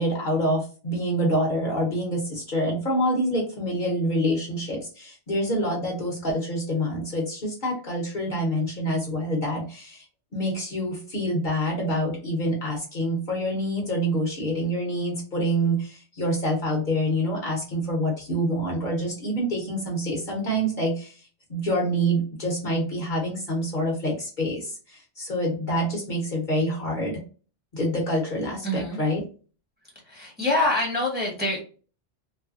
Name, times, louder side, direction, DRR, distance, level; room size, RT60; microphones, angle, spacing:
voice 1, 0.0-10.1 10.3-21.2 21.5-27.2 27.7-29.2, equal, 50° left, -1 dB, 0.9 m, -26 dB
voice 2, 28.6-29.0 30.0-31.6, left 2 dB, 10° right, -2 dB, 0.9 m, -25 dB
3.2 x 2.1 x 2.4 m, 0.37 s
omnidirectional pair, 1.2 m